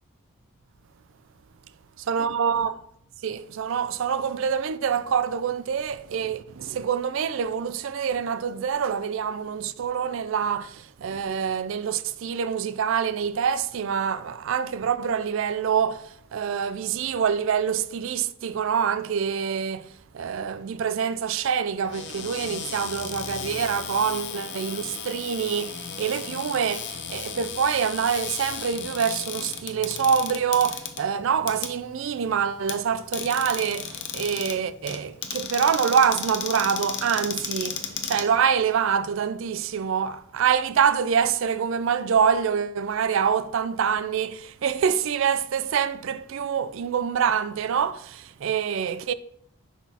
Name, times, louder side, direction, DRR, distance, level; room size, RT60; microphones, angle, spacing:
voice 1, 2.1-2.8 3.2-49.1, right 7 dB, 60° right, 0.3 m, -26 dB
Cupboard open or close, 21.8-38.9, left 7 dB, 55° left, 0.6 m, -35 dB
6.0 x 5.8 x 2.9 m
head